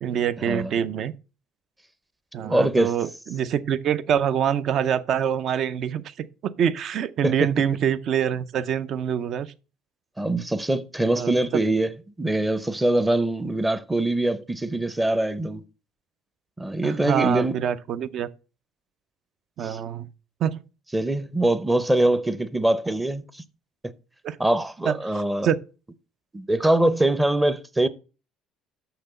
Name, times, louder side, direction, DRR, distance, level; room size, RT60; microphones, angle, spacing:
voice 1, 0.0-1.1 2.3-6.1 6.4-9.5 11.2-11.3 16.8-18.3 19.6-20.1 20.4-20.6 24.2-24.4 24.9-25.6, right 9 dB, 50° right, 0.6 m, -25 dB
voice 2, 2.4-2.9 7.2-7.5 10.2-15.6 16.6-17.6 19.6-19.8 20.9-23.4 24.4-25.5 26.3-27.9, right 1 dB, 10° right, 0.7 m, -23 dB
6.7 x 5.9 x 6.7 m
cardioid pair, 135°, 0 cm